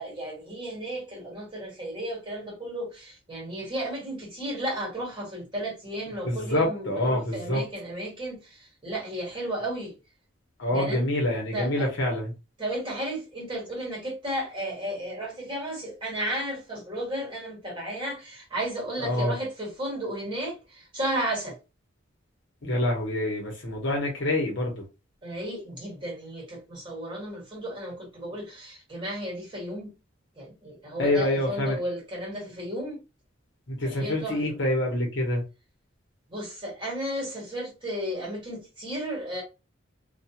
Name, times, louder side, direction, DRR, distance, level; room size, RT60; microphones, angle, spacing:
voice 1, 0.0-9.9 10.7-11.1 11.5-11.9 12.6-21.6 25.2-29.9 30.3-33.0 33.8-34.4 36.3-39.4, right 1 dB, 25° right, 1.4 m, -34 dB
voice 2, 6.2-7.6 10.6-12.3 19.0-19.3 22.6-24.8 31.0-31.8 33.7-35.4, left 1 dB, 60° left, 0.9 m, -26 dB
2.3 x 2.3 x 2.8 m
head